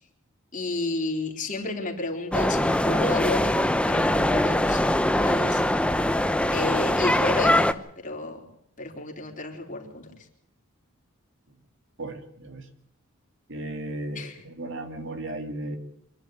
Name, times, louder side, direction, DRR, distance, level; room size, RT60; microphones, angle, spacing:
voice 1, 0.5-5.6 6.5-8.4 8.8-10.1 14.1-14.4, left 2 dB, 40° left, 2 dB, 3.9 m, -32 dB
sound 1, 2.3-7.7, left 1 dB, 5° left, 0.7 m, -22 dB
voice 2, 12.0-12.7 13.5-15.8, right 1 dB, 60° right, 6 dB, 2.6 m, -35 dB
25.5 x 11.0 x 9.3 m, 0.76 s
head